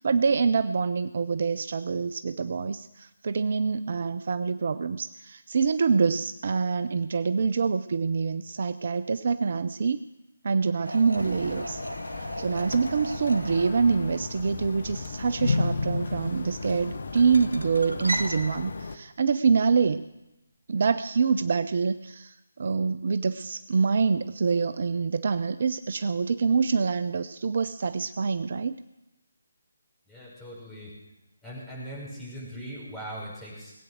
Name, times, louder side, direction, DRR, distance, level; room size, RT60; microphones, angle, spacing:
voice 1, 0.0-10.0 10.4-11.8 12.4-20.0 20.7-28.8, right 5 dB, 50° right, 13 dB, 0.5 m, -26 dB
sound 1, 10.8-18.4, right 1 dB, 85° right, 1.5 m, -38 dB
sound 2, 11.2-19.0, left 3 dB, 55° left, 1.1 m, -34 dB
voice 2, 30.1-30.9 31.4-33.7, equal, 5° left, -7 dB, 6.4 m, -40 dB
20.0 x 8.9 x 6.5 m, 0.95 s
figure-of-eight pair, 150°, 0 cm